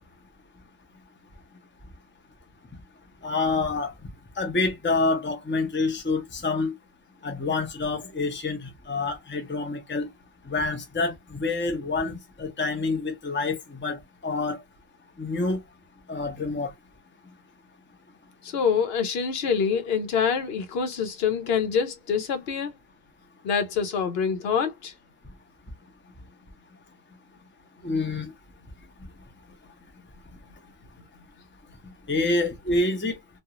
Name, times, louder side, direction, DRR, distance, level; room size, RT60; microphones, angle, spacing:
voice 1, 3.2-3.9 4.4-6.7 7.2-10.1 10.5-14.6 15.2-15.6 16.1-16.7 27.8-28.3 32.1-33.2, left 3 dB, 15° left, 0.6 m, -27 dB
voice 2, 18.4-22.7 23.4-24.9, left 6 dB, 75° left, 0.9 m, -26 dB
2.4 x 2.3 x 2.8 m
omnidirectional pair, 1.1 m